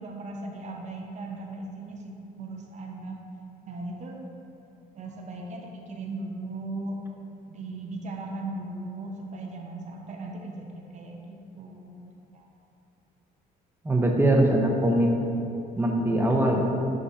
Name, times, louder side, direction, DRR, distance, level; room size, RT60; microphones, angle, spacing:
voice 1, 0.0-3.2 3.6-4.2 5.0-7.0 7.5-12.5, right 2 dB, 45° right, 1 dB, 0.7 m, -38 dB
voice 2, 13.8-15.1 15.8-16.6, right 1 dB, 15° right, 1 dB, 0.8 m, -22 dB
11.0 x 3.8 x 2.7 m, 2.7 s
cardioid pair, 110°, 17 cm